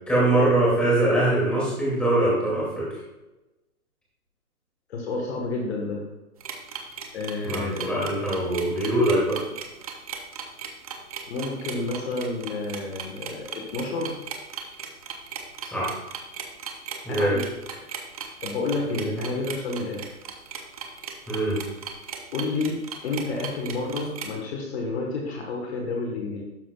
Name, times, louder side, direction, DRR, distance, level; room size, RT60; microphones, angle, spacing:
voice 1, 0.1-2.9 7.4-9.4 15.7-15.9 17.0-17.4 18.9-19.2 21.3-21.6, right 1 dB, ahead, -8 dB, 2.4 m, -23 dB
voice 2, 4.9-6.0 7.1-8.5 11.3-14.2 17.1-17.8 18.1-20.1 22.3-26.4, left 3 dB, 45° left, 0 dB, 1.4 m, -30 dB
sound 1, 6.4-24.3, right 7 dB, 25° right, 0.6 m, -36 dB
12.0 x 5.5 x 2.3 m, 1.0 s
hypercardioid pair, 150°, 44 cm